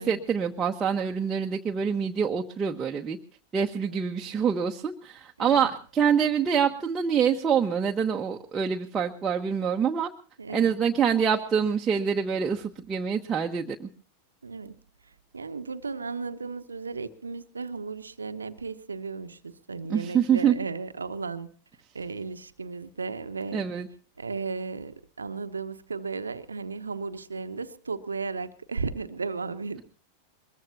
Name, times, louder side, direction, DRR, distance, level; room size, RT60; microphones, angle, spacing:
voice 1, 0.0-3.2 3.5-10.1 10.5-13.9 19.9-20.6 23.5-23.9, right 7 dB, 20° right, 0 dB, 1.1 m, -26 dB
voice 2, 5.4-5.7 10.4-10.8 14.4-14.8 15.3-21.5 21.9-23.6 24.2-29.8, right 4 dB, 75° right, 12 dB, 1.0 m, -35 dB
22.5 x 22.0 x 2.8 m, 0.42 s
figure-of-eight pair, 90°, 0 cm